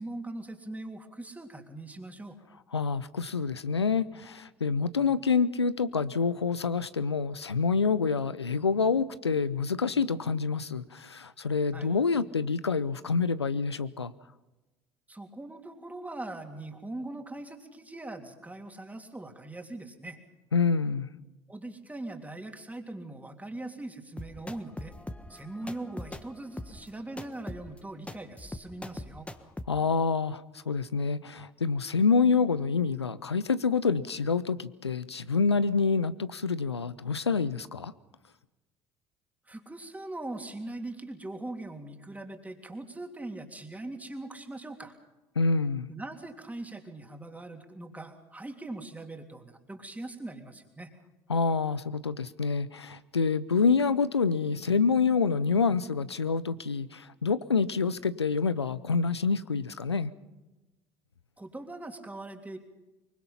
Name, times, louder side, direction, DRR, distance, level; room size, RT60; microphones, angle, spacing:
voice 1, 0.0-2.4 11.7-11.9 15.1-20.2 21.5-24.9 25.3-29.3 39.4-44.9 45.9-50.9 61.4-62.6, right 2 dB, 10° right, 5 dB, 3.2 m, -41 dB
voice 2, 2.7-14.1 20.5-21.1 29.7-37.9 45.4-45.9 51.3-60.1, left 5 dB, 90° left, 17 dB, 0.6 m, -27 dB
sound 1, 24.2-29.7, left 1 dB, 10° left, 1.4 m, -42 dB
24.0 x 23.0 x 5.8 m, 1.1 s
figure-of-eight pair, 60°, 14 cm